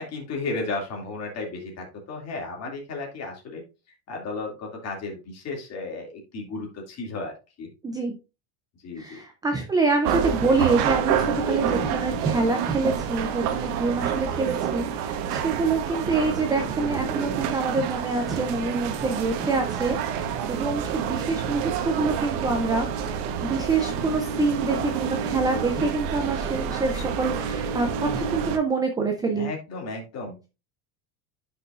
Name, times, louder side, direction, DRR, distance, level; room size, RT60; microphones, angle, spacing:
voice 1, 0.0-3.6 4.1-7.7 8.8-9.2 29.3-30.4, left 3 dB, 35° left, 1 dB, 2.5 m, -34 dB
voice 2, 7.8-8.2 9.0-22.9 23.4-29.5, right 3 dB, 10° right, 4 dB, 0.4 m, -26 dB
sound 1, 10.0-28.6, right 7 dB, 85° right, 1.3 m, -28 dB
10.0 x 5.5 x 2.5 m, 0.29 s
cardioid pair, 160°, 45 cm